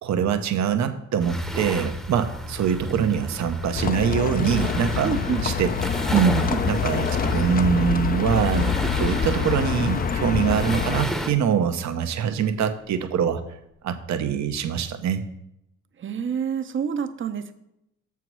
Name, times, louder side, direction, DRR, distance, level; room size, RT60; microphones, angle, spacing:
voice 1, 0.0-5.1 5.4-5.7 6.1-13.4 13.8-15.2, right 8 dB, 65° right, 8 dB, 0.9 m, -24 dB
sound 1, 1.2-11.3, equal, ahead, 0.8 m, -33 dB
Livestock farm animals working animals, 3.7-11.0, left 6 dB, 30° left, 0.5 m, -26 dB
voice 2, 5.0-5.5 6.5-6.6 16.0-17.5, right 7 dB, 40° right, 10 dB, 0.7 m, -28 dB
sound 2, 7.6-11.6 12.1-12.3, left 4 dB, 70° left, 1.1 m, -37 dB
7.0 x 4.7 x 6.1 m, 0.81 s
cardioid pair, 90°, 30 cm